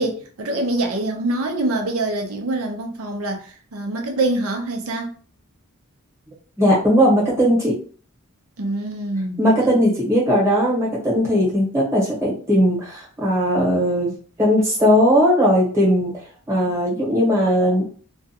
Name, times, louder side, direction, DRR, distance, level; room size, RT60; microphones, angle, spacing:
voice 1, 0.0-5.1 8.6-9.8, right 2 dB, 85° right, 0.6 m, -25 dB
voice 2, 6.6-7.7 9.4-16.1 16.5-17.8, equal, 15° right, 1.1 m, -18 dB
2.5 x 2.3 x 2.7 m
head